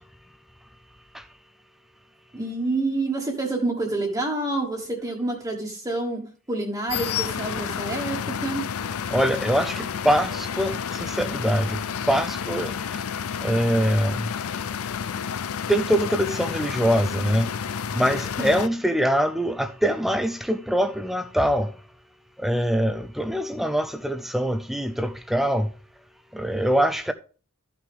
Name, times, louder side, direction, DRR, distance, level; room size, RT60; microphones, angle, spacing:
voice 1, 2.3-8.7 18.4-18.6, right 2 dB, 15° right, 1.4 m, -28 dB
sound 1, 6.9-18.7, left 7 dB, 75° left, 0.5 m, -30 dB
voice 2, 9.1-11.8 12.1-12.7 13.4-14.2 15.7-17.5 17.9-21.7 22.4-25.7 26.3-27.1, equal, ahead, 0.4 m, -23 dB
13.0 x 5.9 x 3.5 m
head